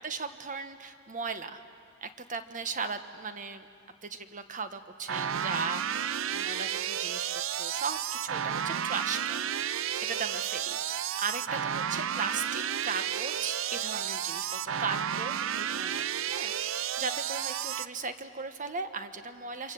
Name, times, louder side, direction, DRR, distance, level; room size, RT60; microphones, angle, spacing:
voice 1, 0.0-1.6 2.0-3.7 4.0-7.2 7.5-9.5 10.0-19.7, right 4 dB, 40° right, 9 dB, 1.2 m, -37 dB
sound 1, 5.1-17.9, right 9 dB, 65° right, 0.6 m, -32 dB
28.0 x 26.0 x 7.8 m, 2.4 s
head